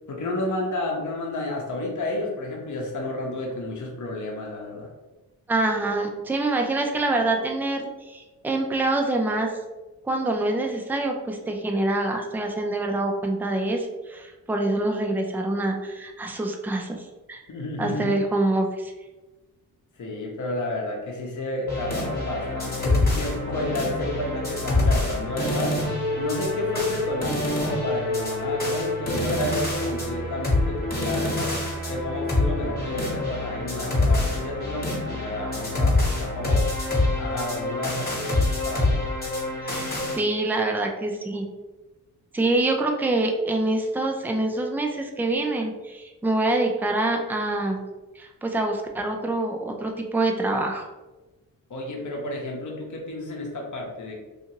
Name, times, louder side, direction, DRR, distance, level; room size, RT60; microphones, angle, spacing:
voice 1, 0.1-4.9 17.5-18.2 20.0-25.8 26.2-31.5 31.9-36.7 37.1-39.1 51.7-54.2, left 2 dB, 50° left, 0 dB, 0.8 m, -31 dB
voice 2, 5.5-9.5 10.0-17.4 17.8-18.9 39.6-39.9 40.2-41.5 42.3-47.8 48.2-50.9, right 2 dB, 5° right, 2 dB, 0.4 m, -25 dB
sound 1, 21.7-40.2, left 2 dB, 25° left, 1.1 m, -26 dB
2.6 x 2.5 x 2.9 m, 1.1 s
cardioid pair, 70°, 37 cm